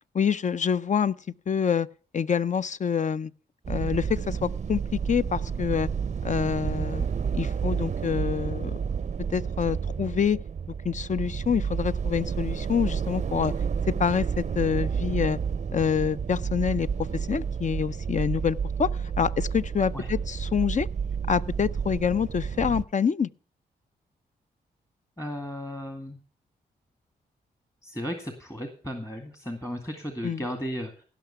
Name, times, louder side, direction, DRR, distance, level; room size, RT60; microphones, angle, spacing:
voice 1, 0.1-1.1 1.5-1.9 2.1-3.3 3.7-5.9 6.2-7.1 7.3-8.8 9.3-10.4 10.8-13.5 14.0-15.4 15.7-16.9 17.1-20.9 21.3-23.3 30.2-30.4, left 7 dB, 40° left, 0.5 m, -26 dB
sound 1, 3.6-22.8, right 6 dB, 40° right, 0.5 m, -30 dB
voice 2, 25.2-26.2 27.8-30.9, equal, 15° left, 2.0 m, -35 dB
16.0 x 6.1 x 5.7 m
supercardioid pair, 45°, 19 cm